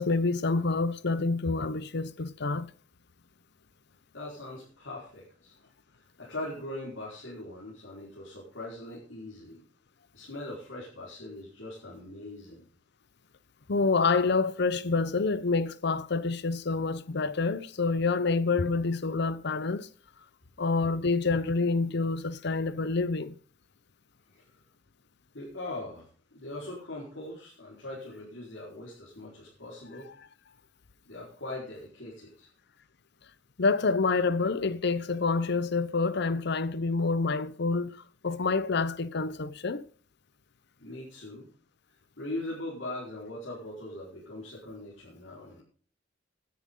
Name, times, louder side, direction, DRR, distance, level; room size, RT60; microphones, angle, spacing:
voice 1, 0.0-2.7 13.7-19.9 20.6-23.3 33.6-38.0 38.2-39.8, left 4 dB, 60° left, 0.8 m, -27 dB
voice 2, 4.1-5.7 5.9-9.6 10.1-12.6 24.3-24.4 25.3-30.1 31.0-32.5 40.8-41.5 42.2-45.6, left 1 dB, 80° left, 4.6 m, -41 dB
17.0 x 10.5 x 3.8 m
head